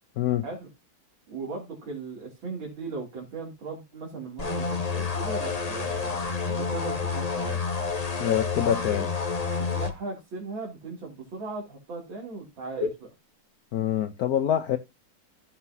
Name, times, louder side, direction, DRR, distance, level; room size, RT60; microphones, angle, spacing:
voice 1, 1.3-7.6 9.6-13.1, right 2 dB, 80° right, 3.5 m, -37 dB
sound 1, 4.4-9.9, left 5 dB, 25° left, 0.9 m, -29 dB
voice 2, 8.2-9.1 13.7-14.8, left 10 dB, 60° left, 1.1 m, -25 dB
15.5 x 5.9 x 2.7 m
omnidirectional pair, 2.1 m